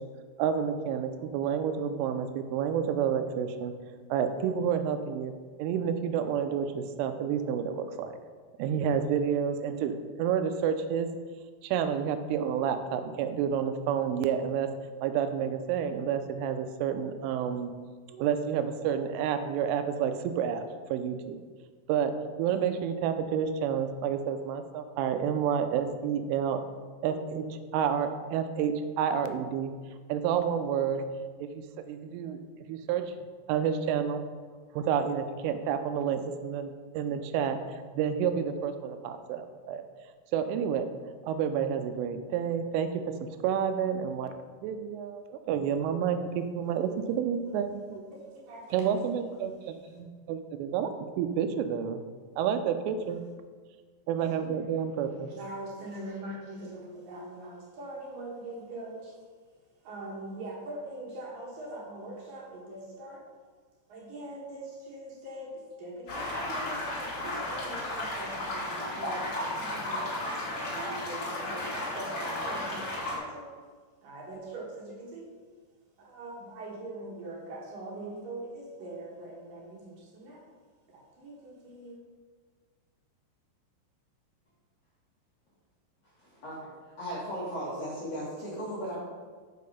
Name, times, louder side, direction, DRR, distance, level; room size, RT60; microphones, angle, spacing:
voice 1, 0.4-3.7 4.1-5.3 5.6-8.1 8.6-11.1 11.6-14.7 15.0-17.7 18.1-20.6 20.9-21.4 21.9-22.1 22.4-26.6 27.0-27.5 27.7-29.7 30.1-31.0 31.4-31.5 31.9-32.4 32.7-33.0 33.5-34.2 34.8-39.8 40.3-40.9 41.3-43.0 43.4-44.3 44.6-48.1 48.7-50.9 51.2-52.0 52.4-53.2 54.1-55.3, right 8 dB, 85° right, 8 dB, 3.1 m, -29 dB
voice 2, 48.1-49.2 54.4-54.5 55.3-59.1 59.8-63.2 63.9-70.1 70.5-73.5 74.0-75.3 76.0-80.4 80.9-82.0, right 1 dB, 65° right, -4 dB, 2.4 m, -42 dB
sound 1, 66.1-73.2, left 1 dB, 50° left, 1.5 m, -34 dB
voice 3, 86.2-86.7 87.0-89.0, equal, 85° left, -8 dB, 1.4 m, -36 dB
6.5 x 5.8 x 5.4 m, 1.5 s
omnidirectional pair, 5.6 m